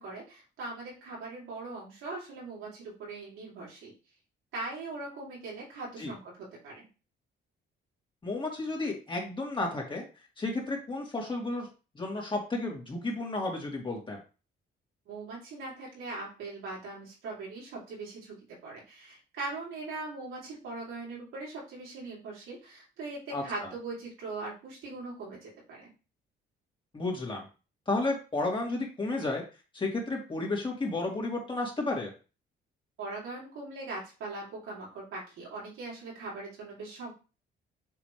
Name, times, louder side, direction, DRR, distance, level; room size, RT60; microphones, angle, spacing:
voice 1, 0.0-3.9 4.5-6.9 15.1-18.3 18.6-25.9 33.0-37.1, right 3 dB, 85° right, -4 dB, 4.0 m, -40 dB
voice 2, 8.2-10.0 10.4-11.7 11.9-14.2 23.3-23.4 26.9-27.4 27.9-29.4 29.7-32.1, left 2 dB, 25° left, -2 dB, 3.1 m, -32 dB
7.2 x 5.0 x 3.5 m, 0.33 s
cardioid pair, 90°, 20 cm